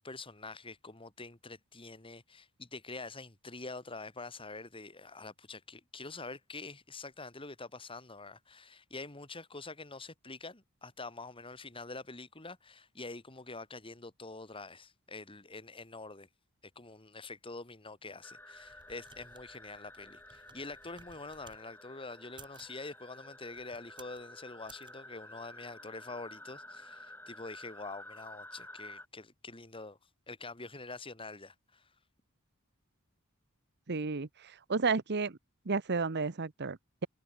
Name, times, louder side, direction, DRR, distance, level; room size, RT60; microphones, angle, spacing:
voice 1, 0.0-16.3 16.7-30.0 30.3-31.9, left 3 dB, 25° left, 3.0 m, -46 dB
sound 1, 18.2-29.1, left 1 dB, 10° left, 4.6 m, -52 dB
sound 2, 18.4-21.6 22.2-22.8 23.5-24.2 24.6-24.9, right 4 dB, 20° right, 5.1 m, -58 dB
voice 2, 33.9-35.4 35.7-37.1, right 4 dB, 55° right, 1.0 m, -32 dB
head